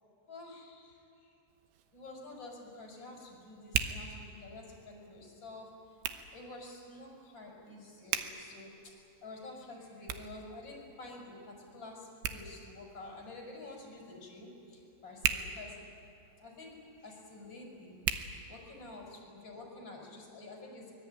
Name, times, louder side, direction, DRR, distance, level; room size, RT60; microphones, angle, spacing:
voice 1, 0.3-1.0 1.9-5.7 6.2-8.7 9.2-15.8 16.4-18.2 18.5-20.9, left 2 dB, 20° left, -1 dB, 5.9 m, -49 dB
Hands, 1.5-19.1, right 9 dB, 75° right, 2.6 m, -42 dB
24.0 x 22.0 x 9.1 m, 2.7 s
omnidirectional pair, 5.9 m